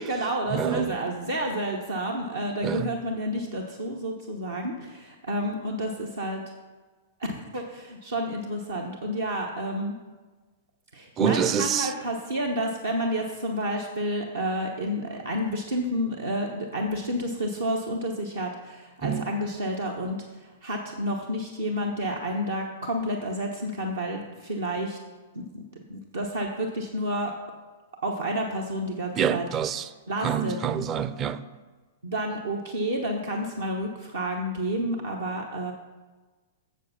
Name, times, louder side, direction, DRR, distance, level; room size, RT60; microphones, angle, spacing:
voice 1, 0.0-6.4 7.3-9.9 10.9-25.0 25.3-25.6 25.9-27.3 28.0-29.5 30.1-30.6 32.0-35.7, equal, 70° right, 1.0 m, -30 dB
voice 2, 0.5-0.9 2.6-2.9 11.2-11.9 19.0-19.3 29.2-29.9 30.2-31.4, right 8 dB, 25° right, 0.5 m, -26 dB
7.7 x 7.3 x 5.8 m
figure-of-eight pair, 105°, 0 cm